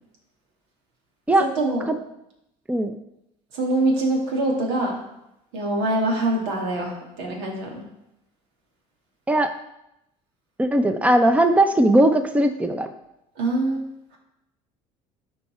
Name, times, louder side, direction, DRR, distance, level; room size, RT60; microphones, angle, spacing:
voice 1, 1.4-1.8 3.5-5.0 5.5-7.8 13.4-13.9, right 2 dB, 85° right, -1 dB, 2.6 m, -24 dB
voice 2, 10.6-12.9, right 1 dB, 10° right, 8 dB, 0.7 m, -18 dB
13.0 x 4.7 x 4.5 m, 0.86 s
supercardioid pair, 90°, 15 cm